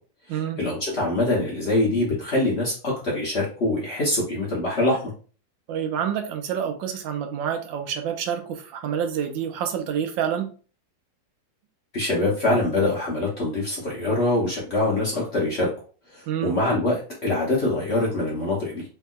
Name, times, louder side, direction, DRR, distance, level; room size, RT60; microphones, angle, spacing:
voice 1, 0.6-5.1 11.9-15.7 16.1-18.8, left 2 dB, 50° left, -4 dB, 0.8 m, -24 dB
voice 2, 5.7-10.5 16.3-16.5, right 8 dB, 85° right, 6 dB, 1.3 m, -28 dB
3.4 x 2.7 x 2.3 m, 0.38 s
omnidirectional pair, 2.0 m